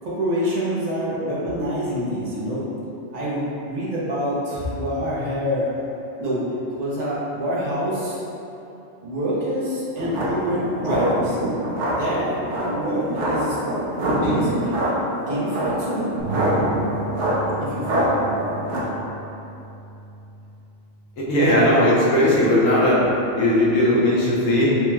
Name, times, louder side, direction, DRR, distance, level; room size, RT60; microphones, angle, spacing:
voice 1, 0.0-2.6 3.1-5.8 6.2-6.4 6.8-8.2 9.0-11.4 11.9-12.4 12.6-13.6 14.0-14.8 15.3-16.0 17.6-18.3, equal, 40° right, -8 dB, 0.8 m, -26 dB
sound 1, 10.0-18.8, right 1 dB, 70° right, 1.0 m, -24 dB
sound 2, 16.2-22.4, right 3 dB, 40° left, 0.9 m, -36 dB
voice 2, 21.3-23.0 23.4-24.7, left 1 dB, 85° left, -7 dB, 1.2 m, -17 dB
4.6 x 2.8 x 2.3 m, 2.9 s
omnidirectional pair, 1.3 m